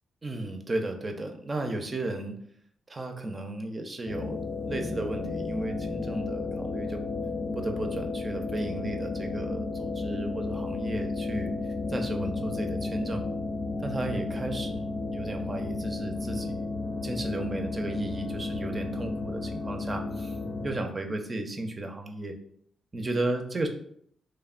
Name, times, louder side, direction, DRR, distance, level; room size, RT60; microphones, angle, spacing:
voice 1, 0.2-2.3 2.9-4.4 4.7-7.0 7.6-11.5 11.9-13.2 13.8-16.7 17.0-20.3 20.6-22.4 22.9-23.7, right 2 dB, 30° right, 4 dB, 0.4 m, -34 dB
sound 1, 4.1-20.8, left 3 dB, 55° left, 0.4 m, -33 dB
3.0 x 2.1 x 2.4 m, 0.65 s
cardioid pair, 85°, 0 cm